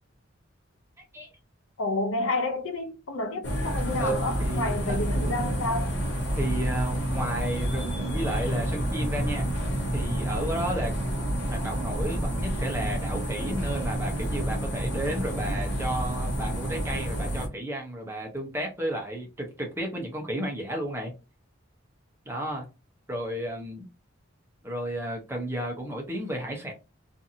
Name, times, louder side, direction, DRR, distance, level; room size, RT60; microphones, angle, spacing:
voice 1, 1.0-1.3 4.0-5.0 6.4-9.5 9.9-10.9 11.5-21.1 22.3-22.7 23.1-23.8 24.6-26.7, right 1 dB, 10° right, 0.7 m, -33 dB
voice 2, 1.8-6.0, left 2 dB, 85° left, 0.6 m, -30 dB
sound 1, 3.4-17.5, right 1 dB, 60° left, 1.1 m, -29 dB
2.6 x 2.6 x 2.6 m
head